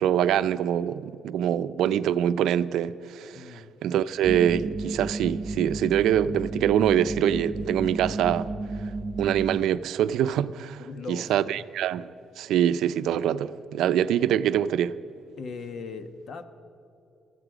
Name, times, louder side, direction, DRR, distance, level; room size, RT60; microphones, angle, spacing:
voice 1, 0.0-8.5 9.2-10.8 11.1-12.1 12.4-15.0, right 10 dB, 85° right, 0.5 m, -24 dB
voice 2, 3.3-3.7 10.8-11.6 15.4-16.4, left 4 dB, 60° left, 1.2 m, -39 dB
sound 1, 4.2-9.6, right 2 dB, 25° right, 0.7 m, -33 dB
19.5 x 14.0 x 5.0 m
cardioid pair, 90°, 0 cm